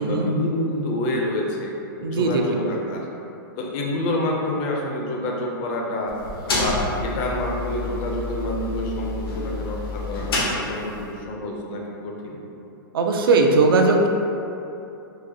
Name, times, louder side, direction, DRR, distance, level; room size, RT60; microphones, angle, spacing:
voice 1, 0.0-1.7 2.0-3.1 3.6-6.2 6.4-12.4, left 1 dB, 35° left, -1 dB, 0.4 m, -27 dB
voice 2, 2.0-2.4 12.9-14.1, right 3 dB, 80° right, 2 dB, 0.4 m, -18 dB
sound 1, 6.1-11.2, left 2 dB, 85° left, 0.8 m, -29 dB
3.9 x 2.4 x 2.7 m, 2.8 s
hypercardioid pair, 155°, 12 cm